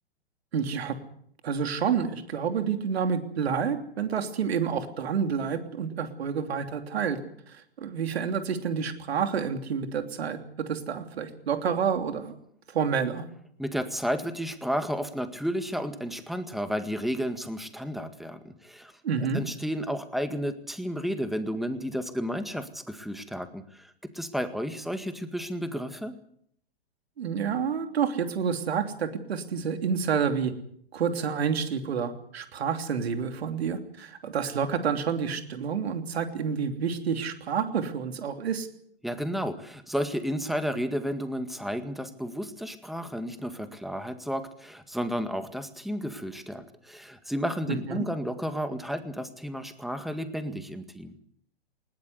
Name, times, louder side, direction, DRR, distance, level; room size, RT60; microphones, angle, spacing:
voice 1, 0.5-1.0 1.4-7.2 7.5-12.4 12.7-13.3 19.0-19.4 27.2-30.5 30.9-38.7 47.9-48.1, right 7 dB, 70° right, 7 dB, 3.2 m, -29 dB
voice 2, 13.6-18.9 19.3-26.2 39.0-51.1, equal, ahead, 10 dB, 1.9 m, -32 dB
20.5 x 19.0 x 8.1 m, 0.66 s
hypercardioid pair, 120°, 32 cm